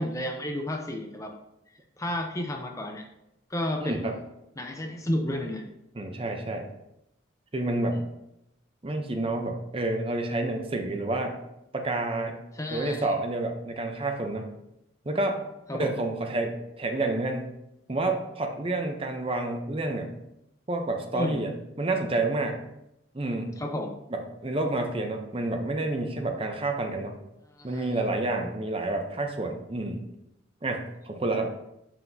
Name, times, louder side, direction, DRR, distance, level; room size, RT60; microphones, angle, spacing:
voice 1, 0.0-1.3 2.0-3.1 3.5-4.2 4.6-5.7 7.9-8.0 12.5-13.1 15.7-16.0 21.1-21.4 23.6-23.9 27.6-28.0, left 1 dB, 15° left, 3 dB, 0.5 m, -32 dB
voice 2, 3.8-4.2 6.0-6.7 7.5-8.0 8.8-11.4 11.7-12.4 12.7-14.5 15.1-15.4 15.7-17.5 17.9-20.1 20.7-22.6 23.1-23.6 24.1-27.2 27.6-30.0 30.6-31.5, right 2 dB, 30° right, 4 dB, 0.6 m, -29 dB
7.4 x 5.7 x 2.7 m, 0.85 s
head